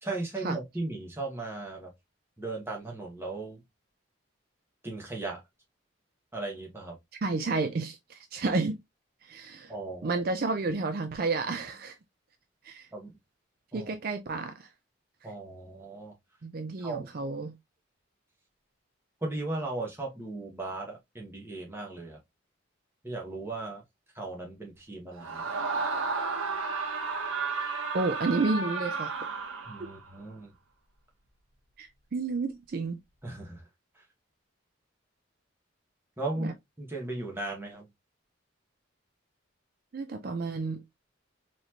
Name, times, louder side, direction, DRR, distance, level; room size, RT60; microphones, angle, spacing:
voice 1, 0.0-1.9 2.4-3.6 4.8-5.4 6.3-7.0 9.7-10.2 12.9-13.1 13.7-13.9 15.2-16.2 16.8-17.1 19.2-22.2 23.0-23.8 24.1-25.5 29.7-30.5 33.2-33.6 33.9-34.0 36.2-37.9, right 2 dB, 10° right, 1.2 m, -37 dB
voice 2, 7.2-8.8 9.2-9.7 10.0-12.0 12.6-12.9 13.7-14.7 16.4-17.5 27.9-29.1 31.8-33.0 36.4-36.5 39.9-40.8, right 3 dB, 45° right, 0.4 m, -31 dB
Screaming, 25.2-30.0, right 4 dB, 90° right, 1.0 m, -32 dB
4.0 x 3.1 x 2.7 m
head